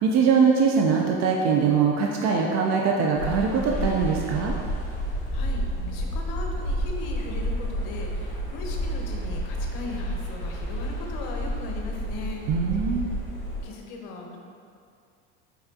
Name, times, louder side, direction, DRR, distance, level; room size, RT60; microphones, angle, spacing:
voice 1, 0.0-4.5 12.5-13.1, right 5 dB, 50° right, 0 dB, 0.4 m, -22 dB
sound 1, 3.1-13.6, equal, 20° left, 1.4 m, -30 dB
voice 2, 5.0-12.5 13.1-13.2 13.6-14.4, left 3 dB, 65° left, 1 dB, 0.8 m, -38 dB
4.1 x 3.5 x 2.7 m, 2.3 s
supercardioid pair, 95°, 35 cm